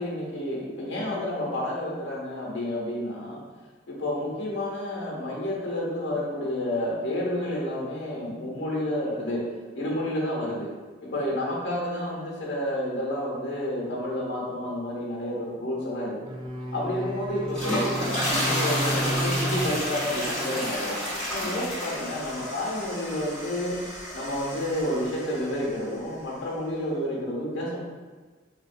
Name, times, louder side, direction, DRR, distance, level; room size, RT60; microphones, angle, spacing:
voice 1, 0.0-3.4 3.9-9.4 9.7-10.7 11.0-16.3 16.7-21.0 21.3-23.8 24.1-27.8, left 1 dB, 70° left, -4 dB, 0.9 m, -30 dB
sound 1, 16.2-20.7, right 1 dB, 25° right, 0.3 m, -33 dB
sound 2, 17.4-25.7, equal, 5° left, 1.2 m, -31 dB
3.8 x 2.2 x 2.6 m, 1.3 s
head